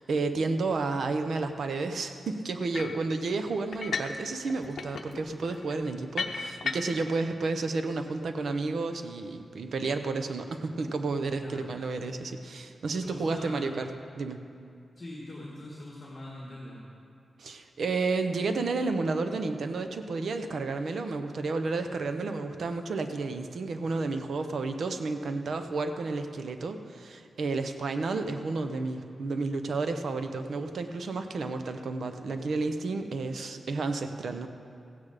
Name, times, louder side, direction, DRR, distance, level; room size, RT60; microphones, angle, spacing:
voice 1, 0.0-13.9 14.2-14.4 17.4-34.5, right 3 dB, 70° right, 7 dB, 0.8 m, -31 dB
sound 1, 2.7-3.0 3.7-4.2 4.5-7.1, left 5 dB, 65° left, 0.8 m, -35 dB
voice 2, 11.4-11.7 13.0-13.7 15.0-16.8, left 1 dB, 30° left, -4 dB, 1.8 m, -42 dB
15.5 x 8.8 x 5.0 m, 2.5 s
wide cardioid pair, 140°, 0 cm